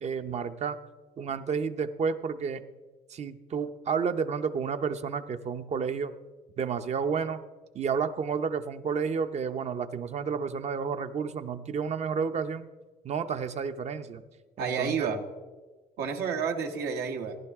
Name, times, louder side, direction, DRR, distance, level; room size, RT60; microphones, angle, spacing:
voice 1, 0.0-0.8 1.2-2.6 3.1-6.1 6.6-7.4 7.7-12.7 13.0-14.2 14.6-15.1, right 6 dB, 40° right, 9 dB, 0.7 m, -31 dB
voice 2, 14.6-15.2 16.0-17.4, right 6 dB, 75° right, 3 dB, 1.4 m, -30 dB
17.5 x 11.0 x 3.6 m, 1.2 s
cardioid pair, 110°, 17 cm